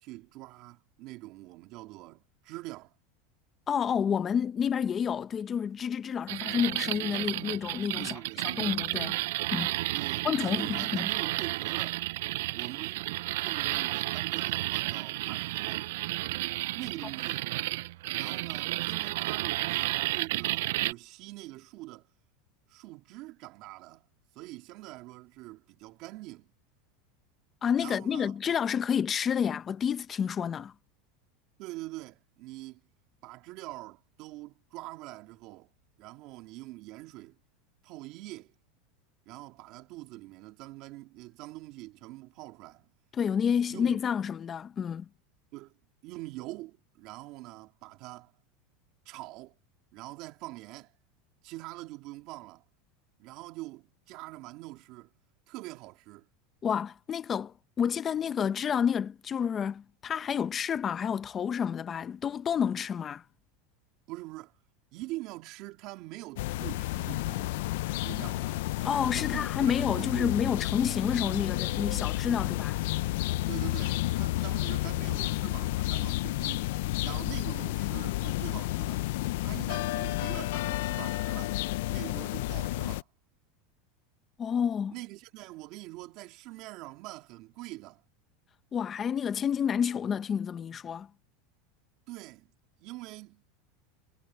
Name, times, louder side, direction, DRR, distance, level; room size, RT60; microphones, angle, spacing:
voice 1, 0.0-2.9 8.0-8.5 9.9-12.0 12.5-15.9 16.7-17.5 18.1-22.1 22.7-24.1 24.3-26.5 27.8-28.5 31.6-32.8 33.2-35.7 36.0-37.4 37.8-38.5 39.3-42.9 43.7-44.0 45.5-48.3 49.0-49.5 49.9-50.9 51.4-52.6 53.2-55.1 55.5-56.3 64.1-64.6 64.9-67.5 68.0-68.6 69.1-70.4 73.5-76.7 77.0-79.0 79.4-81.6 81.9-83.1 84.9-88.0 92.1-92.5 92.8-93.4, right 19 dB, 50° right, 2.8 m, -44 dB
voice 2, 3.7-8.2 8.5-9.2 9.5-9.7 10.2-11.1 27.6-30.7 43.1-45.1 56.6-63.2 68.8-72.8 84.4-84.9 88.7-91.1, left 7 dB, 25° left, 0.8 m, -29 dB
sound 1, 6.3-20.9, right 18 dB, 75° right, 0.4 m, -32 dB
sound 2, 66.4-83.0, left 17 dB, 75° left, 0.5 m, -31 dB
supercardioid pair, 145°, 0 cm